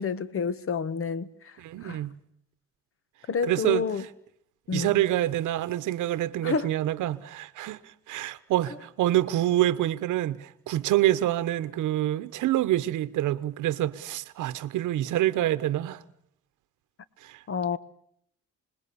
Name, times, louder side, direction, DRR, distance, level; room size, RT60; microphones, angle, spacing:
voice 1, 0.0-2.0 3.3-4.0 4.7-4.9 6.4-6.7 17.5-17.8, left 5 dB, 45° left, 1.5 m, -29 dB
voice 2, 1.6-2.2 3.4-3.9 4.7-16.0 17.2-17.4, right 14 dB, 85° right, 1.0 m, -27 dB
28.5 x 21.0 x 6.9 m
cardioid pair, 90°, 30 cm